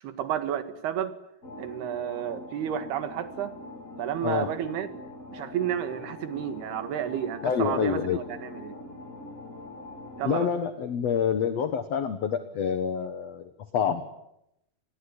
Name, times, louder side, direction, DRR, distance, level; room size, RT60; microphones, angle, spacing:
voice 1, 0.0-1.1 1.6-3.5 4.0-4.9 5.3-8.7 10.2-10.5, right 10 dB, 80° right, 10 dB, 3.8 m, -31 dB
sound 1, 1.4-10.4, left 2 dB, 25° left, 2.8 m, -43 dB
voice 2, 7.4-8.2 10.2-14.0, left 7 dB, 60° left, 10 dB, 1.9 m, -27 dB
27.5 x 21.0 x 9.9 m, 0.83 s
omnidirectional pair, 4.6 m